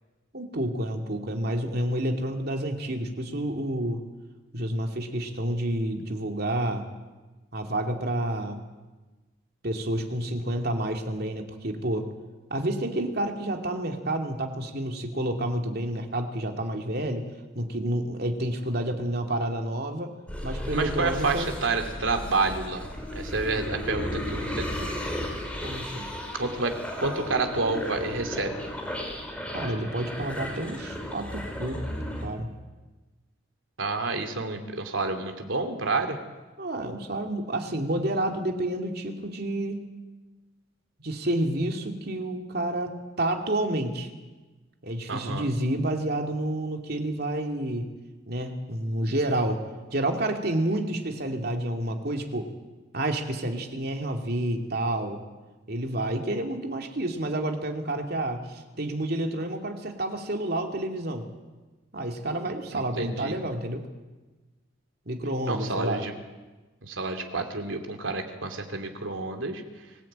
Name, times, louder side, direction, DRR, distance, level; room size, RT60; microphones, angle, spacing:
voice 1, 0.3-4.0 4.5-6.9 7.5-8.6 9.6-12.1 12.5-17.2 17.5-20.1 20.4-21.5 25.6-26.1 29.5-31.8 32.2-32.5 36.6-39.8 41.0-44.1 44.8-47.9 48.3-49.6 49.9-52.5 52.9-55.2 55.7-61.2 61.9-63.8 65.1-66.0, right 1 dB, 50° right, 4 dB, 2.7 m, -29 dB
sound 1, 20.3-32.3, equal, 5° left, 4.4 m, -34 dB
voice 2, 20.7-22.9 23.1-24.9 26.4-28.6 33.8-36.2 45.1-45.5 62.7-63.3 65.5-66.1 66.8-69.6, right 3 dB, 80° right, 5 dB, 2.9 m, -29 dB
25.0 x 16.0 x 8.9 m, 1.2 s
head